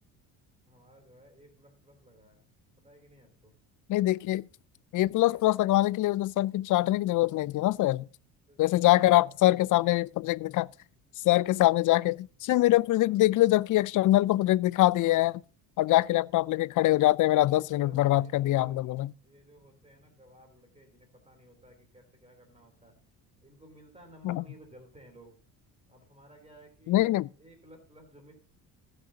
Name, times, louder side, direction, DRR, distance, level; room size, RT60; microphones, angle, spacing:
voice 1, 0.7-2.4 2.8-3.5 8.5-9.9 12.5-12.6 13.0-13.1 15.8-16.2 17.5-22.9 23.4-25.3 25.9-27.1 27.4-28.3, right 1 dB, 15° right, 3.4 m, -56 dB
voice 2, 3.9-4.4 4.9-8.1 8.6-10.7 11.2-15.4 15.8-19.1 24.2-24.4 26.9-27.3, left 16 dB, 50° left, 0.4 m, -24 dB
20.0 x 6.7 x 2.8 m
supercardioid pair, 80°, 42 cm